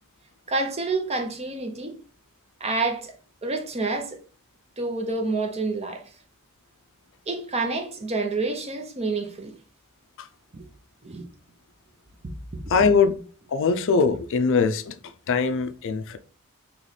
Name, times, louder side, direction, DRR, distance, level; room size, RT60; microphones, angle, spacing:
voice 1, 0.5-2.0 2.6-3.1 3.4-4.2 4.8-6.0 7.3-9.5 10.5-10.6 11.0-11.2, right 3 dB, 30° right, 0.7 m, -28 dB
voice 2, 12.7-13.1 13.5-14.9 15.3-16.2, left 5 dB, 60° left, 0.4 m, -21 dB
3.2 x 3.0 x 4.0 m
head